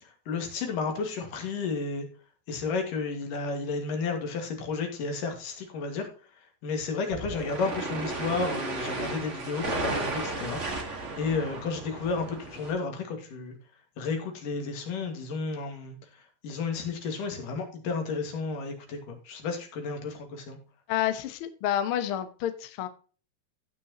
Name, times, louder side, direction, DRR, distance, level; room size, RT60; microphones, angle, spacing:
voice 1, 0.3-2.1 2.5-6.1 6.6-13.5 14.0-16.0 16.4-20.6, left 4 dB, 70° left, 3.5 m, -32 dB
sound 1, 7.1-12.7, right 2 dB, 35° right, 1.3 m, -34 dB
voice 2, 20.9-22.9, left 11 dB, 85° left, 1.2 m, -29 dB
17.0 x 5.9 x 2.9 m
omnidirectional pair, 4.0 m